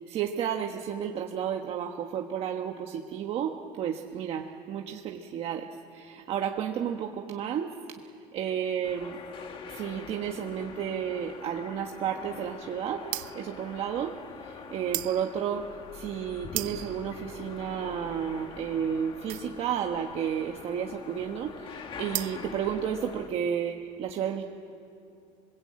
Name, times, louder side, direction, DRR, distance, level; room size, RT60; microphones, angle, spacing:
voice 1, 0.1-7.7 8.3-9.2 9.7-13.1 13.3-14.1 14.4-15.7 15.9-24.4, right 8 dB, 40° right, 3 dB, 1.2 m, -32 dB
sound 1, 8.8-23.3, left 6 dB, 35° left, 1.7 m, -44 dB
sound 2, 13.0-23.4, right 19 dB, 70° right, 0.7 m, -39 dB
27.5 x 22.5 x 8.7 m, 2.6 s
cardioid pair, 175°, 15 cm